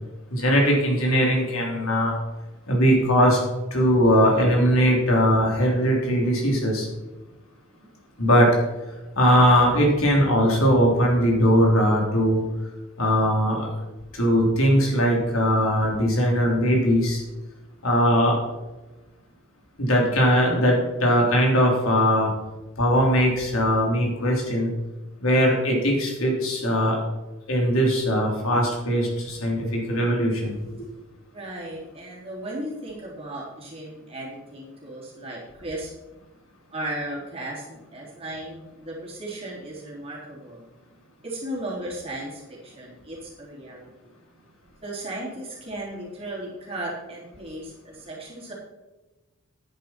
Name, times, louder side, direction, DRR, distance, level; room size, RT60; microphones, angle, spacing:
voice 1, 0.3-2.1 2.7-3.4 3.7-6.9 8.2-8.5 9.2-12.4 13.0-13.7 14.1-17.2 17.8-18.4 19.8-22.3 22.8-24.7 25.2-27.0 27.5-30.5, equal, 70° left, -1 dB, 3.4 m, -20 dB
voice 2, 31.3-35.9 36.7-40.6 41.2-44.1 44.8-48.5, right 1 dB, 25° right, -4 dB, 3.6 m, -36 dB
10.5 x 10.0 x 4.4 m, 1.1 s
head